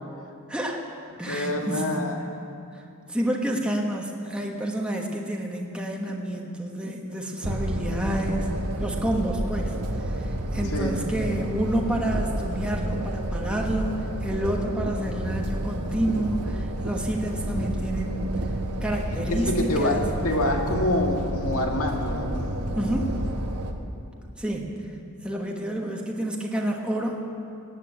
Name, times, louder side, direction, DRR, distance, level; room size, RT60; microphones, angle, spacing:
voice 1, 0.5-0.9 1.2-2.0 2.7-2.8 3.1-8.5 8.8-18.4 18.8-20.3 22.7-23.2 24.4-24.8 25.2-27.2, right 1 dB, 5° right, -1 dB, 1.3 m, -29 dB
voice 2, 1.3-2.2 10.7-11.0 19.3-23.1, left 1 dB, 70° left, 2 dB, 2.0 m, -27 dB
sound 1, 7.4-23.7, right 1 dB, 80° right, 1.2 m, -30 dB
18.5 x 8.6 x 8.8 m, 2.5 s
head